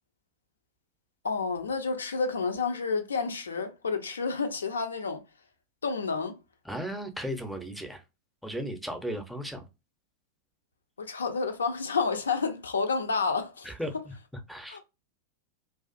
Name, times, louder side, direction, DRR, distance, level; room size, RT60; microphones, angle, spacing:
voice 1, 1.2-5.2 5.8-6.4 11.0-13.7 14.7-14.8, left 4 dB, 70° left, 0.4 m, -30 dB
voice 2, 6.6-8.0 8.4-9.7 13.6-14.1 14.5-14.8, equal, ahead, 0.5 m, -35 dB
2.4 x 2.4 x 2.3 m
figure-of-eight pair, 90°, 0 cm